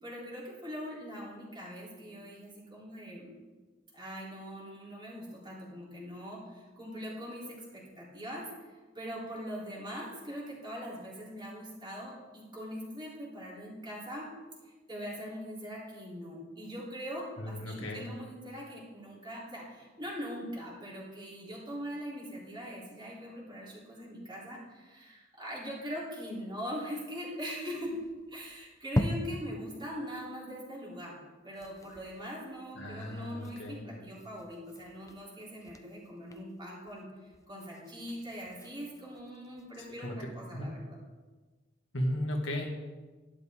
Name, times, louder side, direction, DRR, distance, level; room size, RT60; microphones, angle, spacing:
voice 1, 0.0-3.3 3.9-8.4 8.9-14.3 14.6-27.9 28.3-37.1 37.5-41.0, equal, 25° right, -5 dB, 3.6 m, -42 dB
voice 2, 17.4-18.1 32.7-33.9 40.0-40.7 41.9-42.7, equal, 75° left, 0 dB, 2.0 m, -35 dB
sound 1, 27.8-29.7 30.1-30.2 30.5-30.6 30.9-31.1 31.4-40.0, left 1 dB, 15° left, 0.6 m, -40 dB
12.0 x 11.0 x 3.7 m, 1.3 s
head